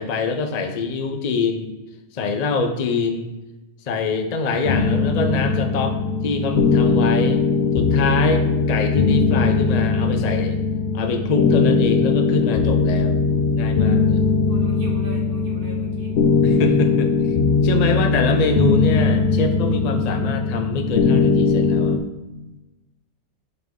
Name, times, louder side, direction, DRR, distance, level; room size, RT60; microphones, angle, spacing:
voice 1, 0.0-1.7 2.1-3.3 3.8-7.4 7.7-10.6 10.9-13.2 13.6-14.2 16.4-17.4 17.6-22.0, left 3 dB, 40° left, 6 dB, 0.6 m, -24 dB
sound 1, 4.7-22.0, left 4 dB, 70° left, 1.0 m, -19 dB
voice 2, 14.5-16.1, right 1 dB, 50° right, -1 dB, 1.6 m, -39 dB
5.8 x 5.4 x 3.7 m, 1.0 s
omnidirectional pair, 1.2 m